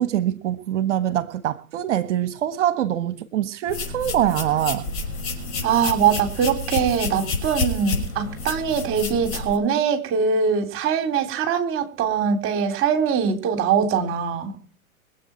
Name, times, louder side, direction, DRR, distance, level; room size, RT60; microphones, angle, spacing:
voice 1, 0.0-4.8, right 11 dB, 55° right, 1.5 m, -24 dB
sound 1, 3.7-9.6, left 3 dB, 30° left, 5.8 m, -29 dB
voice 2, 5.6-14.5, right 7 dB, 30° right, 3.7 m, -22 dB
25.0 x 8.6 x 4.5 m
figure-of-eight pair, 110°, 41 cm